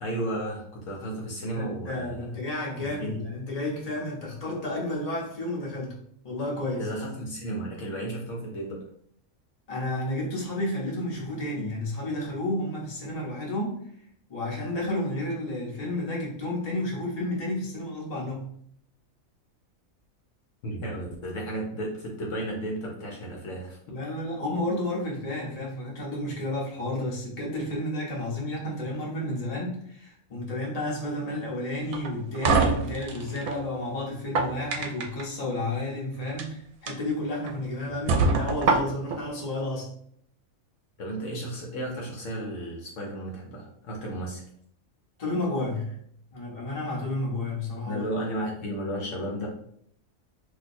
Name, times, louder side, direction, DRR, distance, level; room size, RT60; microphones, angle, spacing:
voice 1, 0.0-2.4 2.8-3.2 6.7-8.8 20.6-24.1 37.9-38.0 41.0-44.4 47.8-49.5, right 1 dB, 65° left, -2 dB, 1.0 m, -34 dB
voice 2, 1.5-5.9 6.2-6.9 9.7-13.8 14.3-18.5 23.9-39.9 45.2-46.0 46.3-48.0, left 1 dB, 30° left, -4 dB, 0.9 m, -31 dB
sound 1, 31.9-33.6 34.1-35.2 36.2-36.4 36.9-37.0 37.5-37.6 38.1-39.2, right 3 dB, 80° right, 1.0 m, -24 dB
2.7 x 2.1 x 4.1 m, 0.67 s
omnidirectional pair, 1.4 m